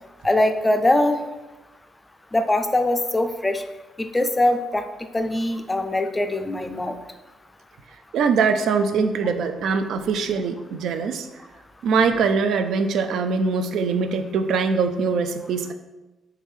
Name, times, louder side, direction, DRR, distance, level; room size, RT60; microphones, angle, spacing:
voice 1, 0.2-1.2 2.3-3.6 4.0-4.8 5.1-7.0, left 1 dB, 15° left, 7 dB, 0.3 m, -22 dB
voice 2, 8.1-11.3 11.8-15.7, right 5 dB, 75° right, 8 dB, 0.3 m, -22 dB
3.5 x 3.2 x 3.1 m, 1.1 s
cardioid pair, 90°, 0 cm